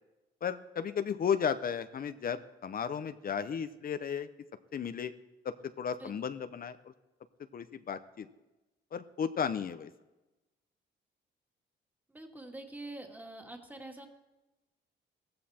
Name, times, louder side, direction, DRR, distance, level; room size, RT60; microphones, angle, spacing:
voice 1, 0.4-4.3 4.7-5.1 5.4-6.8 7.5-8.3 8.9-9.9, left 7 dB, 45° left, 11 dB, 0.8 m, -34 dB
voice 2, 6.0-6.3 12.1-14.1, right 2 dB, 10° right, 3 dB, 2.3 m, -45 dB
16.5 x 15.5 x 4.3 m, 1.0 s
cardioid pair, 90°, 20 cm